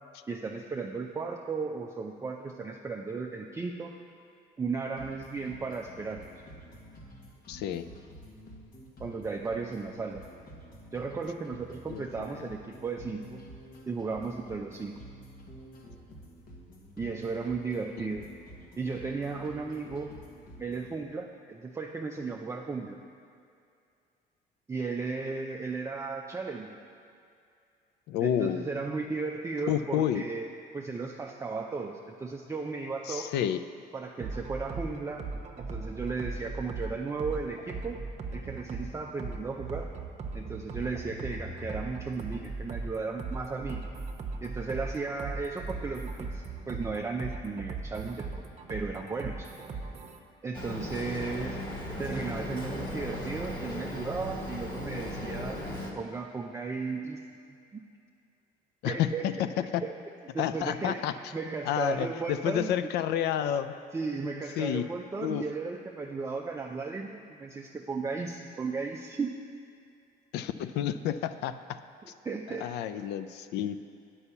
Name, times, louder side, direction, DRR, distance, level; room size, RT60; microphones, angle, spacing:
voice 1, 0.3-3.9 4.6-6.3 9.0-10.2 10.9-13.4 13.9-15.0 17.0-18.3 18.8-20.2 20.6-23.0 24.7-26.8 28.2-30.5 30.7-33.3 33.9-35.3 35.6-38.0 38.3-39.9 40.3-43.8 44.4-48.3 48.7-49.5 50.4-51.6 52.0-55.6 56.0-57.2 57.5-57.8 58.8-59.3 59.8-59.9 60.3-61.0 61.3-62.7 63.9-69.4 72.0-72.7, right 4 dB, 15° right, 1 dB, 0.5 m, -35 dB
sound 1, 5.0-21.0, equal, 60° left, 1.5 m, -50 dB
voice 2, 7.5-7.9 11.9-12.0 28.1-28.6 29.7-30.2 33.1-33.6 58.8-59.3 59.7-59.8 60.4-61.1 61.7-63.7 64.6-64.9 65.2-65.5 70.3-71.8 72.5-73.8, left 10 dB, 80° left, 11 dB, 0.4 m, -30 dB
sound 2, 34.2-50.2, right 3 dB, 40° right, 0.8 m, -38 dB
Boat Water vehicle, 50.5-55.9, equal, 25° left, 1.5 m, -37 dB
8.2 x 5.5 x 7.0 m, 2.4 s
cardioid pair, 110°, 17 cm